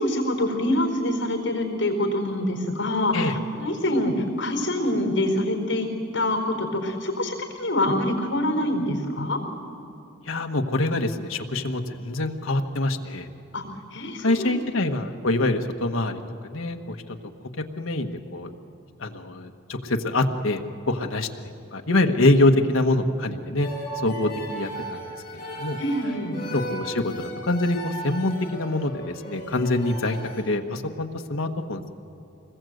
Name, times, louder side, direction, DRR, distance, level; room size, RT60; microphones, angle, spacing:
voice 1, 0.0-9.4 13.5-13.6 13.9-14.6 25.8-26.4, left 1 dB, 65° left, 3 dB, 4.4 m, -25 dB
voice 2, 10.3-13.3 14.2-17.0 17.8-18.5 19.0-23.7 24.0-25.0 25.6-25.8 26.5-31.9, left 2 dB, 85° left, 4 dB, 1.4 m, -25 dB
sound 1, 23.6-30.4, right 1 dB, 40° left, 4.6 m, -37 dB
25.5 x 21.0 x 7.9 m, 2.9 s
head